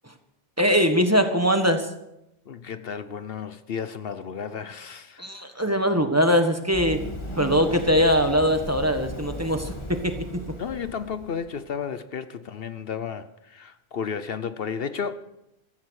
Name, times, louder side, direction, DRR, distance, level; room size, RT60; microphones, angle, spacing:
voice 1, 0.6-1.9 5.2-7.0 7.4-10.2, equal, 15° right, 1.5 m, -21 dB
voice 2, 2.5-5.5 10.6-15.2, left 6 dB, 65° left, 1.0 m, -33 dB
Run, 6.7-11.5, left 1 dB, 25° left, 2.3 m, -36 dB
15.5 x 14.5 x 6.4 m
omnidirectional pair, 1.1 m